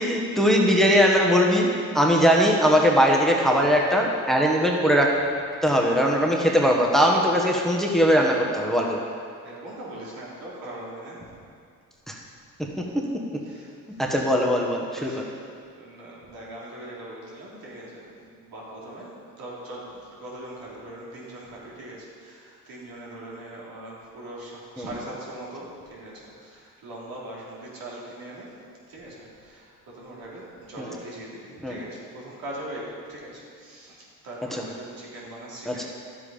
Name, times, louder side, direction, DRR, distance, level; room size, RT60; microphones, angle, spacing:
voice 1, 0.0-1.7 1.9-5.1 5.5-9.0 12.1-12.2 12.6-13.0 14.0-15.3 24.8-24.9 30.8-30.9 31.6-31.8 34.5-34.6 35.6-35.8, equal, ahead, -1 dB, 1.4 m, -20 dB
voice 2, 9.4-11.3 13.5-14.0 15.0-28.5 28.9-32.8 33.1-35.8, right 1 dB, 80° right, -6 dB, 3.0 m, -41 dB
10.5 x 7.6 x 5.1 m, 2.2 s
cardioid pair, 70°, 36 cm